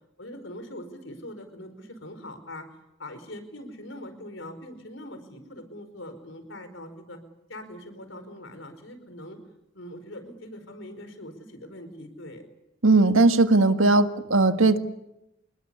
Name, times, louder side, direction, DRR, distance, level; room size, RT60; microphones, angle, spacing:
voice 1, 0.2-2.7 3.0-7.2 7.5-9.4 9.7-12.5, left 1 dB, 70° left, 10 dB, 4.9 m, -42 dB
voice 2, 12.8-14.8, right 3 dB, 85° right, 8 dB, 1.7 m, -18 dB
28.0 x 20.5 x 8.4 m, 0.89 s
head